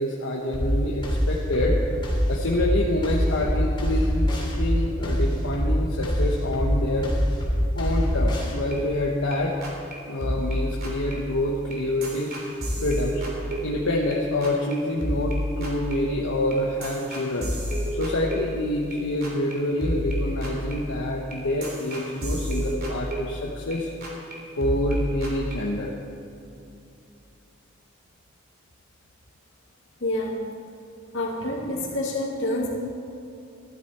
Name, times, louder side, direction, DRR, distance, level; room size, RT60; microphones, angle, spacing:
voice 1, 0.0-1.8 2.3-7.1 7.8-9.6 10.1-12.5 12.8-13.2 13.6-17.5 17.9-23.9 24.6-25.9, left 1 dB, 80° left, -2 dB, 1.2 m, -27 dB
sound 1, 0.5-8.5, equal, 25° left, 2.9 m, -24 dB
sound 2, 8.7-9.3 9.6-9.9 10.2-14.1 14.4-14.7 15.0-19.0 19.2-19.5 19.8-23.8 24.0-24.3 24.6-25.5, equal, 50° right, 2.9 m, -31 dB
voice 2, 30.0-30.4 31.1-32.7, left 1 dB, 65° left, -3 dB, 2.6 m, -27 dB
14.5 x 12.5 x 4.4 m, 2.7 s
head